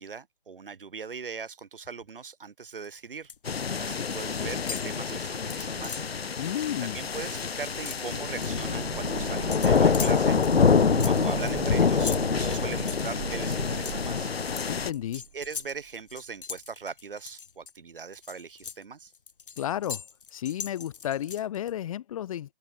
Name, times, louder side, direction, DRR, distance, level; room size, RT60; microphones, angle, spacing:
voice 1, 0.0-6.1 6.8-10.8 11.0-14.3 15.3-19.1, right 5 dB, 65° right, 3.1 m, -40 dB
sound 1, 2.8-3.5 3.8-4.3 4.6-6.2 6.6-6.7 7.0-8.7 9.5-17.7 18.1-21.7, left 6 dB, 60° left, 3.1 m, -41 dB
sound 2, 3.5-14.9, left 6 dB, 85° left, 0.8 m, -26 dB
voice 2, 6.4-7.0 14.7-15.2 19.6-20.0 20.3-22.5, left 11 dB, 35° left, 2.4 m, -32 dB
sound 3, 8.1-15.8 16.1-16.2, right 9 dB, 40° right, 2.0 m, -38 dB
open air
figure-of-eight pair, 145°, 30 cm